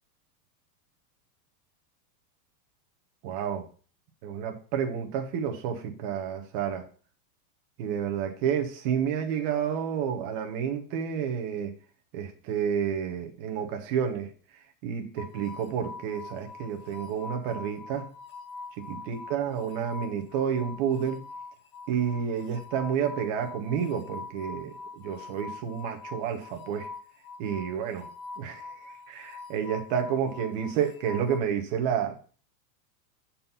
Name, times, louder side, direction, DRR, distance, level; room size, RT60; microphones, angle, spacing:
voice 1, 3.2-3.7 4.2-6.9 7.8-11.8 12.1-14.3 14.8-18.1 18.9-21.2 21.9-26.9 27.4-28.1 28.4-32.1, right 8 dB, 30° right, 1.0 m, -30 dB
sound 1, 15.2-31.4, left 4 dB, 90° left, 1.6 m, -44 dB
7.3 x 4.3 x 5.5 m
supercardioid pair, 180°, 49 cm